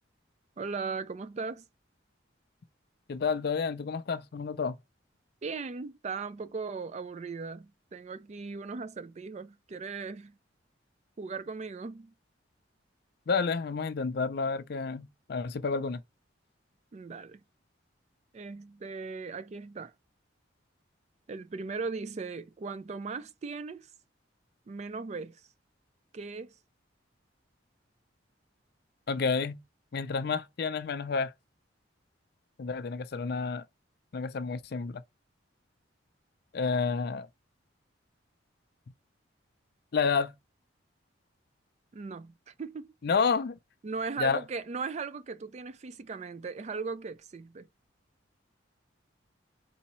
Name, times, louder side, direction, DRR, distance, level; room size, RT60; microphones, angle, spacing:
voice 1, 0.6-1.6 5.4-10.3 11.2-12.1 16.9-17.4 18.3-19.9 21.3-23.9 24.7-25.4 26.1-26.5 41.9-42.9 43.8-47.7, right 4 dB, 35° right, 0.3 m, -38 dB
voice 2, 3.1-4.8 13.3-16.0 29.1-29.6 29.9-31.3 32.6-33.6 34.1-35.0 36.5-37.3 39.9-40.3 43.0-43.6 44.2-44.4, left 5 dB, 55° left, 0.4 m, -30 dB
4.1 x 2.7 x 4.2 m
head